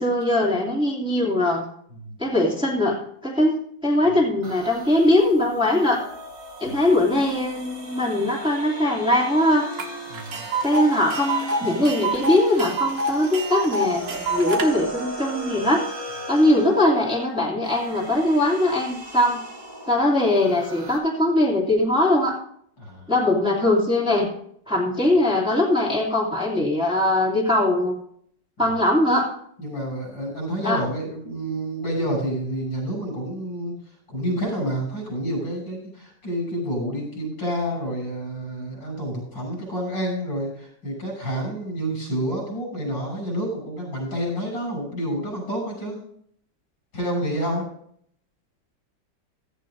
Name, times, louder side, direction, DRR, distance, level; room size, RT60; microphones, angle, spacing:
voice 1, 0.0-1.6 2.2-6.0 6.6-9.7 10.6-15.8 16.3-19.4 19.9-22.4 23.1-24.3 24.7-28.0 28.6-29.3 30.6-30.8, left 1 dB, 5° right, -4 dB, 2.5 m, -21 dB
sound 1, 4.4-21.0, right 1 dB, 50° right, 3.8 m, -38 dB
Tick, 9.8-9.9 10.1-14.7, right 2 dB, 75° right, 2.2 m, -26 dB
voice 2, 10.1-10.4 11.6-11.7 22.8-23.1 29.6-46.0 46.9-47.7, equal, 85° left, 0 dB, 7.4 m, -29 dB
16.0 x 14.5 x 2.6 m, 0.68 s
omnidirectional pair, 2.0 m